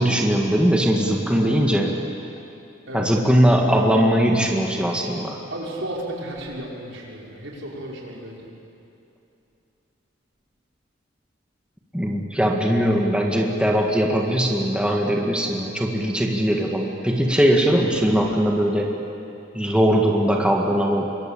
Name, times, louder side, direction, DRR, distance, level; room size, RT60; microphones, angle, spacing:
voice 1, 0.0-2.0 2.9-5.4 11.9-19.0 19.5-21.0, equal, 5° right, 0 dB, 2.0 m, -20 dB
voice 2, 5.5-8.4, right 1 dB, 70° right, -2 dB, 5.5 m, -33 dB
27.0 x 23.0 x 8.6 m, 2.7 s
head